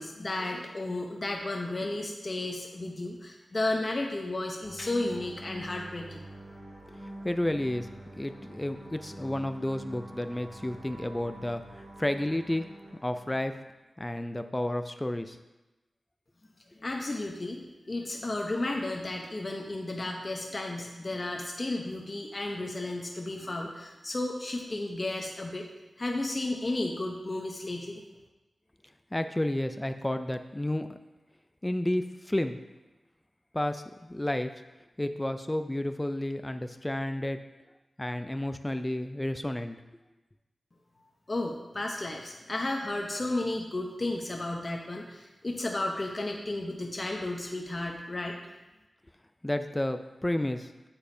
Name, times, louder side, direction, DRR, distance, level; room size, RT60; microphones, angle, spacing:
voice 1, 0.0-6.3 16.7-25.7 26.0-28.0 41.3-48.4, left 2 dB, 35° left, 0 dB, 0.7 m, -33 dB
sound 1, 4.6-13.6, right 1 dB, 30° right, 2.2 m, -46 dB
voice 2, 7.2-7.9 8.2-12.7 13.0-13.5 14.0-15.4 29.1-31.0 31.6-32.6 33.5-34.5 35.0-37.4 38.0-39.8 49.4-50.7, left 1 dB, 15° left, 8 dB, 0.3 m, -31 dB
8.4 x 7.1 x 2.7 m, 1.1 s
wide cardioid pair, 100°, 0 cm